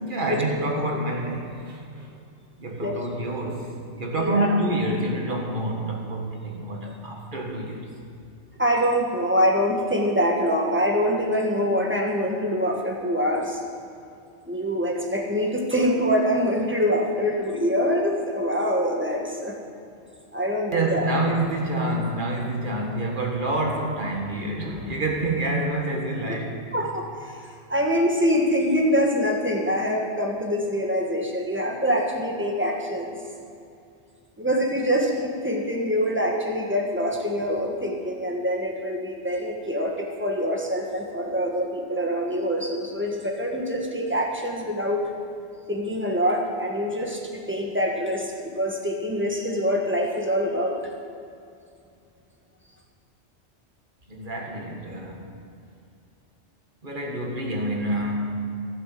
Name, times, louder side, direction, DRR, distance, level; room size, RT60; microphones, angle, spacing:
voice 1, 0.0-2.1 2.6-7.9 20.7-26.7 54.1-55.3 56.8-58.3, right 1 dB, 45° right, 0 dB, 1.9 m, -27 dB
voice 2, 4.2-4.5 8.6-13.6 14.5-19.6 20.3-21.1 26.7-27.4 27.7-33.2 34.4-45.0 45.7-50.9, equal, 10° right, 0 dB, 1.5 m, -25 dB
15.0 x 7.8 x 7.5 m, 2.5 s
omnidirectional pair, 1.2 m